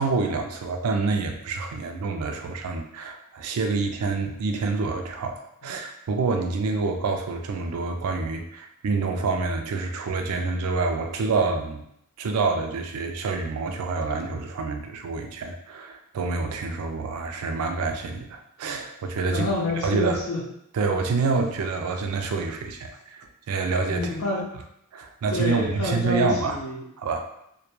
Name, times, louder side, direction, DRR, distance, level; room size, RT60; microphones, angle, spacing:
voice 1, 0.0-5.4 5.6-11.8 12.2-19.5 19.8-20.2 20.7-24.1 24.9-26.6 27.0-27.2, right 4 dB, 80° right, 5 dB, 0.4 m, -27 dB
voice 2, 19.3-20.4 23.9-24.4 25.3-26.8, left 2 dB, 85° left, -3 dB, 0.7 m, -28 dB
2.2 x 2.2 x 2.9 m, 0.75 s
head